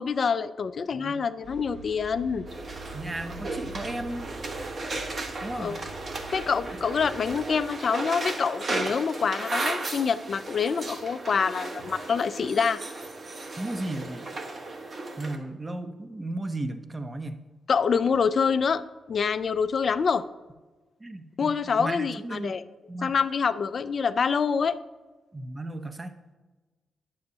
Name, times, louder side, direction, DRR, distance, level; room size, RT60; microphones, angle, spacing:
voice 1, 0.0-2.5 5.6-5.8 6.3-12.8 17.7-18.8 19.1-20.2 21.4-22.6 23.0-24.8, left 6 dB, 60° left, 13 dB, 0.4 m, -26 dB
sound 1, 1.4-7.6, right 2 dB, 75° right, 1.8 m, -45 dB
sound 2, 2.5-15.4, right 2 dB, 50° right, 1.1 m, -35 dB
voice 2, 2.9-4.3 5.4-5.7 6.7-6.8 13.6-14.2 15.2-17.4 21.0-22.6 22.9-23.1 25.3-26.2, right 2 dB, 30° right, 9 dB, 0.7 m, -35 dB
9.3 x 6.9 x 2.7 m, 1.2 s
supercardioid pair, 50°, 0 cm